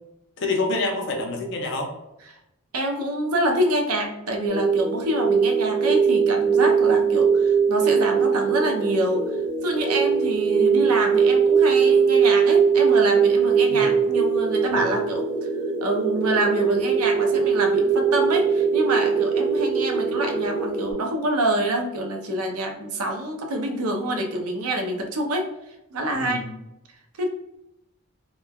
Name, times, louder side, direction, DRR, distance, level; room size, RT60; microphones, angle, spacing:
voice 1, 0.4-1.9 13.7-13.9 14.7-14.9 26.1-26.5, left 2 dB, 55° left, 2 dB, 0.5 m, -27 dB
voice 2, 2.7-15.5 15.8-25.5 25.9-26.4 27.2-27.3, right 1 dB, 85° right, 3 dB, 0.5 m, -26 dB
sound 1, 4.5-20.9, right 6 dB, 40° right, 1.0 m, -21 dB
3.0 x 2.1 x 2.2 m, 0.87 s
head